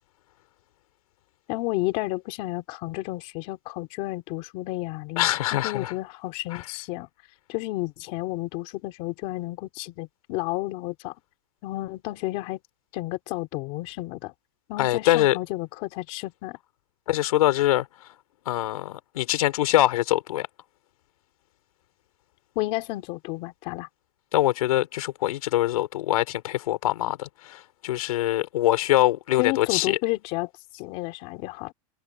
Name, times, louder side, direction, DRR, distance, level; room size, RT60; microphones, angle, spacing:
voice 1, 1.5-7.1 7.5-11.1 11.6-12.6 12.9-14.3 14.7-16.6 22.5-23.9 29.4-31.7, left 20 dB, 35° left, 3.3 m, -31 dB
voice 2, 5.2-5.9 6.5-6.6 14.8-15.4 17.1-17.9 18.5-20.5 24.3-30.0, left 14 dB, 80° left, 3.5 m, -23 dB
supercardioid pair, 180°, 18 cm